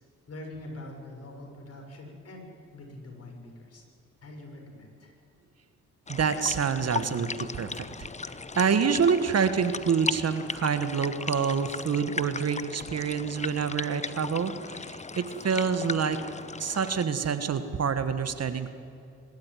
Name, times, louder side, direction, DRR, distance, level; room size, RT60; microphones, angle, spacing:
voice 1, 0.3-3.8 4.2-5.1, left 1 dB, 50° left, 1 dB, 6.5 m, -44 dB
sound 1, 6.1-17.0, left 4 dB, 20° left, 0.8 m, -37 dB
voice 2, 6.1-16.2 16.6-18.7, right 6 dB, 55° right, 11 dB, 1.5 m, -27 dB
25.0 x 13.0 x 9.4 m, 2.6 s
supercardioid pair, 55°, 31 cm